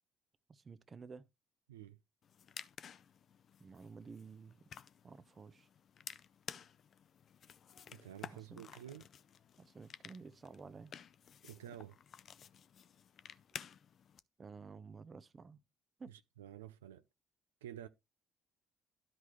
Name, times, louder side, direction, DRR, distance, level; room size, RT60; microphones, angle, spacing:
voice 1, 0.5-1.3 3.6-4.7 5.0-5.7 8.3-8.6 9.6-11.0 14.4-15.6 16.0-16.1, right 4 dB, 35° right, 0.7 m, -52 dB
sound 1, 2.2-14.2, left 8 dB, 50° left, 0.4 m, -53 dB
voice 2, 7.9-9.1 11.4-12.0 16.1-17.0 17.6-17.9, right 11 dB, 85° right, 0.3 m, -50 dB
12.5 x 4.7 x 3.0 m
hypercardioid pair, 50°, 0 cm